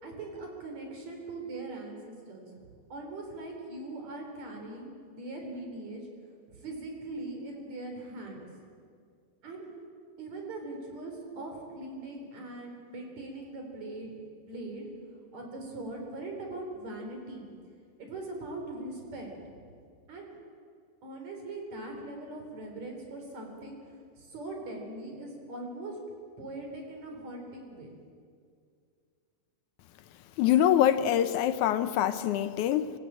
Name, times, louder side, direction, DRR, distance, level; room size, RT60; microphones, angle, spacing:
voice 1, 0.0-2.5 2.9-6.1 6.6-8.4 9.4-9.7 10.2-14.9 15.3-17.5 18.0-19.3 20.1-20.2 21.0-23.8 24.2-26.0 26.4-27.9, right 2 dB, 60° right, 2 dB, 5.0 m, -41 dB
voice 2, 30.4-32.9, left 11 dB, 75° left, 11 dB, 2.1 m, -24 dB
25.5 x 16.5 x 8.9 m, 2.2 s
omnidirectional pair, 3.6 m